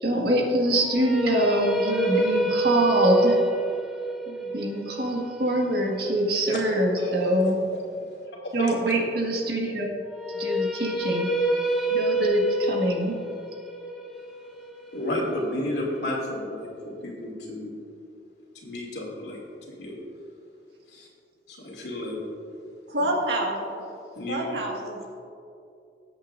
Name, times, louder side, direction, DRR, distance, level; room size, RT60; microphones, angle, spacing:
voice 1, 0.0-3.4 4.3-7.6 8.0-8.1 8.5-9.9 10.4-11.3 11.9-13.2, right 1 dB, 60° right, -1 dB, 1.8 m, -24 dB
sound 1, 0.7-6.8 10.1-16.1, right 2 dB, ahead, 1.0 m, -27 dB
voice 2, 7.0-7.3 7.7-7.8 8.4-8.8 14.9-17.8 18.5-19.4 19.7-20.0 20.9-21.1 21.5-22.2 24.1-24.5, left 1 dB, 80° left, -3 dB, 2.6 m, -32 dB
voice 3, 22.9-23.8 24.3-25.0, right 1 dB, 80° right, -1 dB, 2.0 m, -27 dB
20.0 x 8.1 x 2.6 m, 2.6 s
head